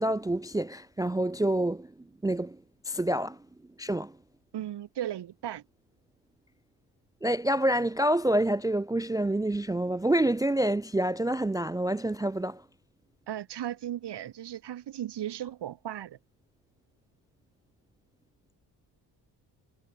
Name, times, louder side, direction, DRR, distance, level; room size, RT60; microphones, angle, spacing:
voice 1, 0.0-1.9 2.2-2.6 2.9-3.4 3.8-4.1 7.2-12.6, right 1 dB, 10° right, 0.3 m, -27 dB
voice 2, 4.5-5.6 13.3-16.2, right 11 dB, 65° right, 3.1 m, -36 dB
cardioid pair, 140°, 44 cm